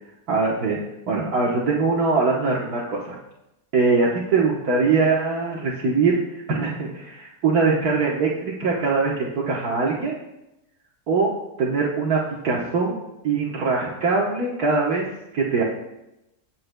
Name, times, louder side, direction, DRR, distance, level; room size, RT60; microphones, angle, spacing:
voice 1, 0.3-0.8 1.1-3.2 3.7-6.2 6.5-10.2 11.1-11.3 11.6-13.0 13.2-15.1 15.3-15.6, right 4 dB, 70° right, -4 dB, 1.7 m, -22 dB
22.5 x 7.6 x 2.2 m, 0.92 s
omnidirectional pair, 1.7 m